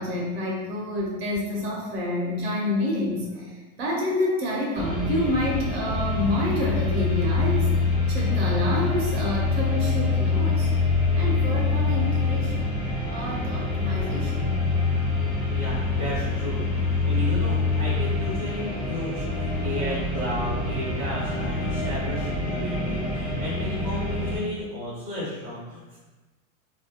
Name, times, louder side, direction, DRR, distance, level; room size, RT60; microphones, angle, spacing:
voice 1, 0.0-3.5 3.8-7.7 8.1-10.7 11.1-12.7 13.1-14.5, left 1 dB, 50° right, -2 dB, 0.7 m, -28 dB
sound 1, 4.7-24.4, left 3 dB, 35° left, 0.7 m, -25 dB
voice 2, 15.5-26.0, left 1 dB, 5° right, -14 dB, 0.5 m, -33 dB
2.4 x 2.3 x 2.8 m, 1.2 s
supercardioid pair, 175°, 39 cm